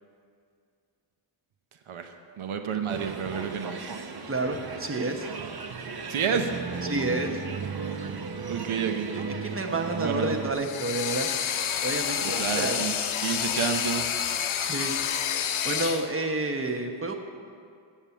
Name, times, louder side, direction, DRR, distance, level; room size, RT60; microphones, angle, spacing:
voice 1, 1.9-4.0 6.1-6.5 8.5-9.1 10.0-10.4 12.2-14.2, right 7 dB, 80° right, 6 dB, 0.8 m, -30 dB
sound 1, 2.9-10.5, right 5 dB, 50° right, 0.8 m, -35 dB
voice 2, 4.3-5.3 6.8-7.3 9.1-11.3 11.8-12.8 14.6-14.9 15.6-17.1, right 2 dB, 25° right, 3 dB, 1.0 m, -29 dB
sound 2, 10.6-16.1, left 8 dB, 75° left, 0.7 m, -29 dB
7.2 x 7.2 x 8.2 m, 2.4 s
cardioid pair, 75°, 49 cm